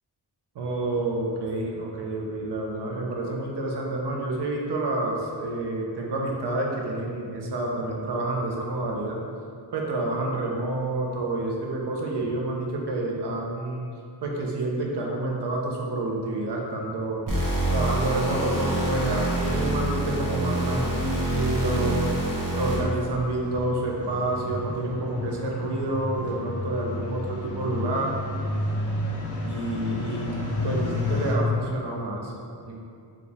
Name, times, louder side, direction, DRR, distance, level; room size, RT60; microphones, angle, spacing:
voice 1, 0.5-9.2 9.7-13.8 14.2-17.2 17.7-22.0 22.5-28.2 29.4-30.4 30.6-32.8, right 2 dB, 70° right, -1 dB, 0.7 m, -28 dB
sound 1, 17.3-23.0, right 1 dB, 50° right, 0.9 m, -26 dB
sound 2, 18.2-31.4, left 2 dB, 35° left, 0.5 m, -33 dB
4.3 x 2.4 x 3.4 m, 2.3 s
wide cardioid pair, 110°, 42 cm